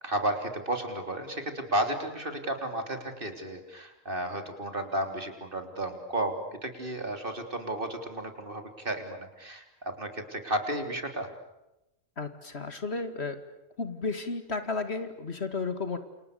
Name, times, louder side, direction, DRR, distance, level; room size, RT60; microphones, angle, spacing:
voice 1, 0.0-11.3, right 1 dB, 40° right, 6 dB, 3.8 m, -33 dB
voice 2, 12.2-13.4 13.8-16.0, left 4 dB, 55° left, 10 dB, 2.3 m, -33 dB
29.0 x 28.0 x 6.8 m, 0.92 s
omnidirectional pair, 1.3 m